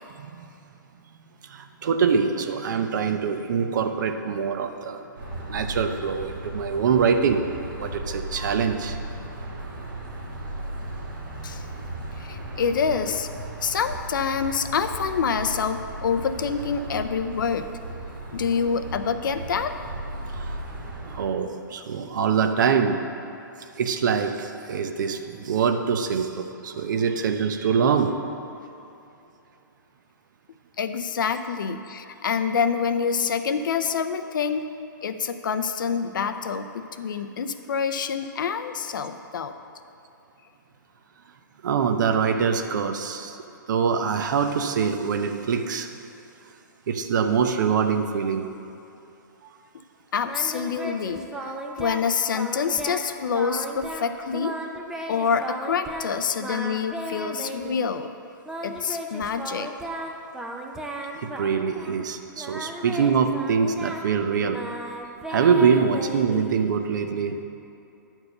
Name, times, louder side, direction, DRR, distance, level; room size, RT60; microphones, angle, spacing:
voice 1, 1.4-5.1 5.4-7.5 7.8-9.0 20.3-20.6 21.0-23.0 23.8-28.2 41.6-43.4 43.7-45.9 46.9-48.5 61.1-64.6 65.3-67.5, right 6 dB, 65° right, 7 dB, 0.8 m, -24 dB
sound 1, 5.2-21.2, right 1 dB, 85° right, 2.1 m, -36 dB
voice 2, 12.2-13.3 13.6-17.7 18.3-19.7 30.8-34.7 35.0-39.5 50.1-54.6 55.1-58.1 58.6-59.7, left 6 dB, 75° left, 9 dB, 0.6 m, -26 dB
Singing, 50.2-52.1 52.3-53.1 53.3-54.1 54.3-56.1 56.4-57.9 58.5-62.1 62.4-66.8, right 1 dB, 5° right, 0.5 m, -35 dB
9.8 x 4.6 x 6.6 m, 2.8 s
hypercardioid pair, 150°, 11 cm